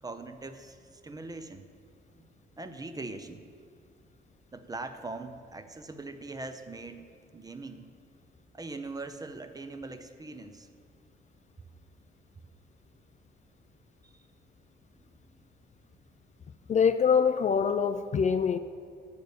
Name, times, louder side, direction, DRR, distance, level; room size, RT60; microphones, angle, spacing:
voice 1, 0.0-1.7 2.1-2.3 2.6-3.5 4.5-7.9 8.5-10.7 14.0-14.2 15.0-15.2, right 3 dB, 20° right, 9 dB, 0.6 m, -41 dB
voice 2, 16.7-18.6, left 6 dB, 35° left, 10 dB, 0.4 m, -24 dB
6.9 x 6.5 x 6.6 m, 2.2 s
cardioid pair, 90°, 20 cm